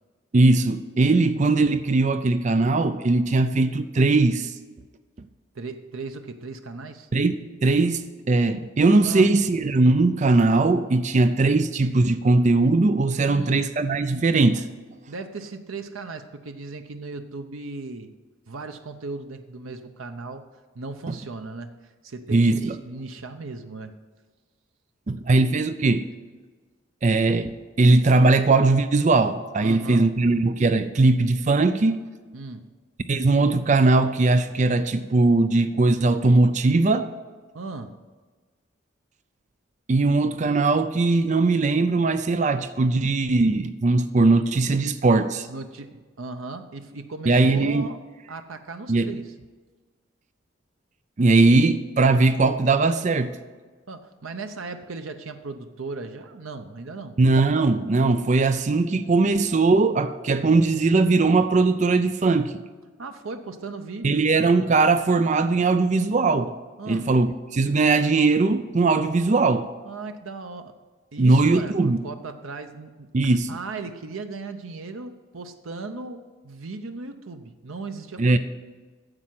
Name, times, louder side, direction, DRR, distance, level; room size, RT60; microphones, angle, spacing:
voice 1, 0.3-4.5 7.1-14.7 21.1-21.2 22.3-22.8 25.1-26.1 27.0-32.0 33.1-37.1 39.9-45.5 47.3-47.9 48.9-49.1 51.2-53.4 57.2-62.5 64.0-66.5 66.9-69.7 71.2-72.0 73.1-73.6 78.2-78.4, right 3 dB, 35° right, 0.4 m, -20 dB
voice 2, 5.5-7.1 9.0-9.3 13.2-13.6 15.1-18.1 18.5-20.4 20.7-23.9 29.6-30.1 32.3-32.6 37.5-38.0 45.5-49.3 53.9-57.2 63.0-64.3 66.8-67.1 69.8-70.8 71.1-78.4, right 3 dB, 85° right, 0.7 m, -37 dB
9.8 x 7.5 x 7.6 m
head